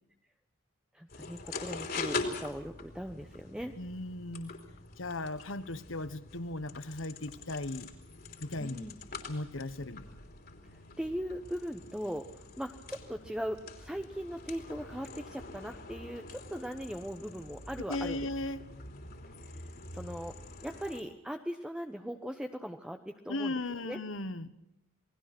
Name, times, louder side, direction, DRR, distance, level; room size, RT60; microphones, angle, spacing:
voice 1, 0.9-3.7 8.6-9.0 11.0-18.3 19.5-19.6 19.9-20.3 20.6-23.5 23.9-24.0, equal, 5° right, 5 dB, 0.9 m, -39 dB
sound 1, 1.1-21.0, left 3 dB, 50° left, 3.2 m, -44 dB
voice 2, 3.8-4.5 5.0-7.9 8.4-8.9 9.3-10.0 17.9-18.6 23.3-24.5, left 2 dB, 65° left, 14 dB, 1.3 m, -37 dB
28.5 x 19.5 x 6.1 m, 0.80 s
head